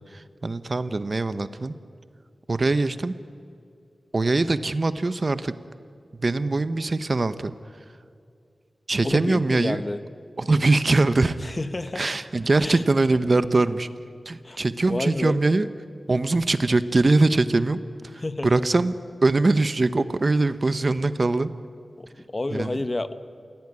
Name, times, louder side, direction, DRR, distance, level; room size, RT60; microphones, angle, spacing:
voice 1, 0.1-1.7 2.5-3.1 4.1-5.5 6.2-7.8 8.9-9.8 10.4-11.4 11.9-13.9 14.2-15.7 16.1-19.0 19.2-21.5 22.5-22.8, right 2 dB, 45° right, 13 dB, 0.8 m, -22 dB
voice 2, 9.0-10.0 11.4-12.0 12.6-12.8 14.4-14.6 14.9-15.4 18.2-18.5 22.0-23.1, left 2 dB, 30° left, 12 dB, 1.0 m, -29 dB
27.5 x 16.5 x 9.8 m, 2.4 s
wide cardioid pair, 100°, 0 cm